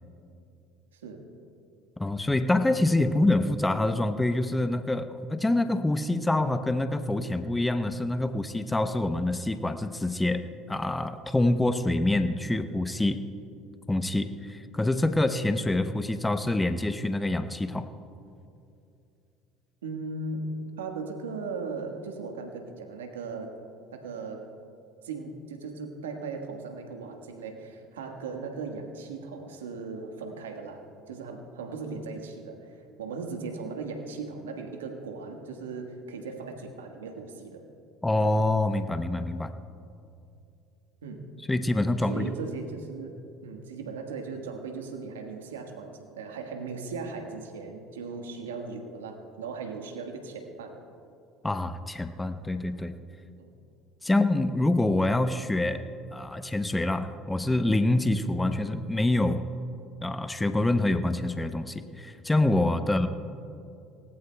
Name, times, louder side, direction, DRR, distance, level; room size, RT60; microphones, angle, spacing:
voice 1, 0.9-1.2 3.1-3.2 19.8-20.5 20.8-23.5 23.9-24.5 25.0-37.6 41.0-41.2 42.1-43.1 43.4-50.8 53.4-53.5 62.8-62.9, right 4 dB, 90° right, 4 dB, 1.5 m, -38 dB
voice 2, 2.0-13.2 13.9-17.9 38.0-39.5 41.5-42.3 51.4-53.0 54.0-55.8 56.1-59.4 60.0-63.1, left 2 dB, 10° left, 9 dB, 0.8 m, -26 dB
24.0 x 18.0 x 2.3 m, 2.6 s
hypercardioid pair, 70°, 0 cm